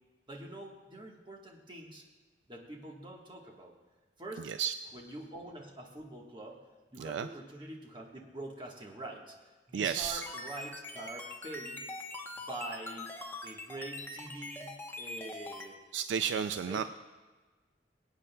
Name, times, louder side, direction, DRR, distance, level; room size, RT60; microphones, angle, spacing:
voice 1, 0.3-2.0 2.5-3.7 4.2-4.5 4.9-6.6 6.9-9.3 9.7-11.8 12.4-13.1 13.4-15.8 16.7-16.8, right 1 dB, 25° right, 0 dB, 1.3 m, -45 dB
voice 2, 4.4-4.9 7.0-7.3 9.7-10.2 15.9-16.8, right 8 dB, 75° right, 10 dB, 0.3 m, -33 dB
sound 1, 9.9-15.7, left 2 dB, 10° left, 0.9 m, -43 dB
22.5 x 8.7 x 2.2 m, 1.3 s
head